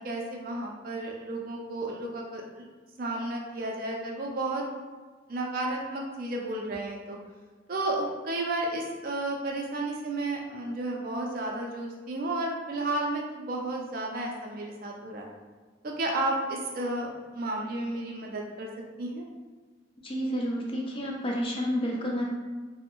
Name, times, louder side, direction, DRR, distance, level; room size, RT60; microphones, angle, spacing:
voice 1, 0.0-2.6 3.0-4.6 5.3-7.2 7.7-15.3 15.8-18.7 19.0-19.2, right 2 dB, 45° right, 0 dB, 0.4 m, -32 dB
voice 2, 20.0-22.3, equal, 25° left, -1 dB, 0.3 m, -30 dB
2.5 x 2.0 x 2.9 m, 1.4 s
head